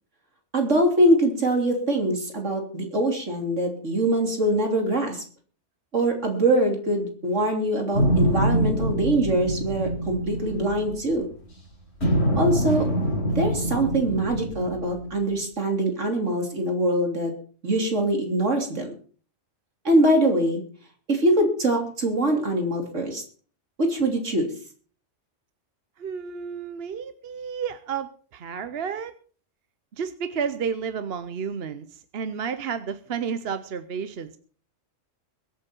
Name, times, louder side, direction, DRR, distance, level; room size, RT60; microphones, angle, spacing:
voice 1, 0.5-5.2 5.9-11.3 12.4-12.9 13.4-17.3 17.6-18.9 19.9-20.6 21.1-23.2 23.8-24.5, right 1 dB, 75° right, 3 dB, 3.5 m, -23 dB
sound 1, 7.9-11.5 12.0-15.3, right 1 dB, 60° left, 5.1 m, -25 dB
voice 2, 26.0-29.1 30.0-34.4, right 6 dB, 55° right, 12 dB, 1.0 m, -31 dB
22.5 x 8.4 x 4.5 m, 0.42 s
omnidirectional pair, 1.3 m